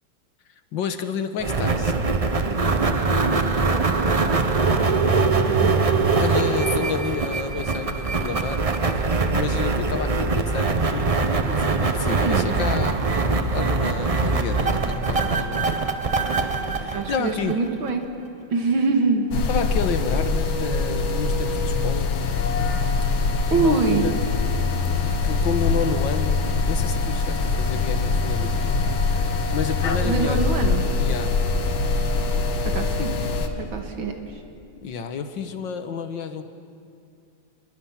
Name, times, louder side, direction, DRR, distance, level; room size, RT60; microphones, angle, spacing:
voice 1, 0.5-1.9 6.1-11.1 11.5-13.0 13.5-15.6 16.8-17.6 19.5-22.1 23.5-24.2 25.2-28.8 29.1-30.6 31.0-31.4 34.8-36.4, left 6 dB, 70° left, 9 dB, 1.9 m, -30 dB
sound 1, 1.4-17.9, right 3 dB, 50° right, 0.4 m, -22 dB
voice 2, 3.3-5.8 12.2-12.5 16.9-18.1 18.5-19.3 23.5-24.1 30.0-30.8 32.6-34.1, right 3 dB, 75° right, 4 dB, 2.7 m, -25 dB
sound 2, 19.3-33.5, left 4 dB, 90° left, 2.2 m, -23 dB
28.5 x 22.5 x 5.9 m, 2.4 s
omnidirectional pair, 2.2 m